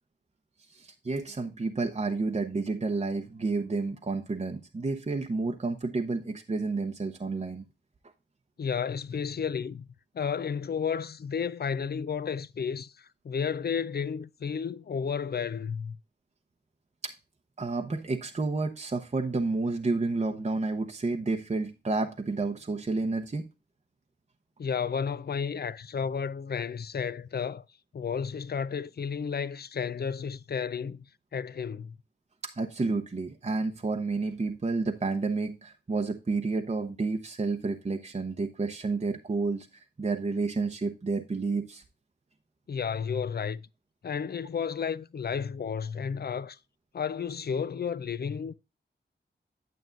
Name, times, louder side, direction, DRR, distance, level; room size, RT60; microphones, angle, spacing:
voice 1, 0.7-7.7 17.0-17.1 17.6-23.5 32.4-41.8, right 3 dB, 35° right, 0.8 m, -30 dB
voice 2, 8.6-9.9 10.1-16.0 24.6-27.6 27.9-31.0 31.3-32.0 42.7-43.6 44.0-46.6 46.9-48.5, left 6 dB, 55° left, 0.5 m, -32 dB
9.2 x 7.7 x 2.5 m
cardioid pair, 55°, 19 cm